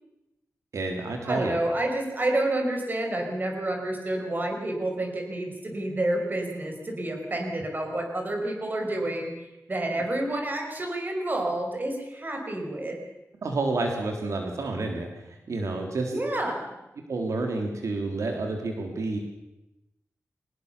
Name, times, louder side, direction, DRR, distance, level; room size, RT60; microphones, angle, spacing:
voice 1, 0.7-1.6 13.4-16.1 17.1-19.2, right 3 dB, 85° right, 3 dB, 3.7 m, -29 dB
voice 2, 1.2-13.0 16.1-16.7, right 1 dB, 35° right, 3 dB, 5.3 m, -29 dB
23.5 x 20.5 x 7.0 m, 0.95 s
wide cardioid pair, 115°, 5 cm